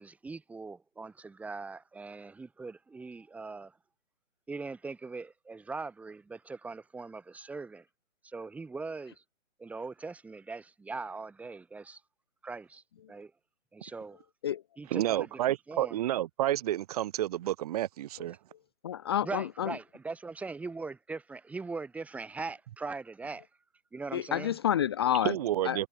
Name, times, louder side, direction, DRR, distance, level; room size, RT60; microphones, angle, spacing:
voice 1, 0.0-3.8 4.5-7.9 8.2-9.2 9.6-12.0 12.4-13.3 13.7-14.2 14.8-16.0 19.2-23.5 23.9-24.6, right 4 dB, 5° right, 2.4 m, -41 dB
voice 2, 14.9-18.4 25.2-25.9, right 13 dB, 30° right, 2.7 m, -30 dB
voice 3, 18.8-19.7 24.1-25.4 25.6-25.8, left 10 dB, 20° left, 0.7 m, -29 dB
figure-of-eight pair, 135°, 39 cm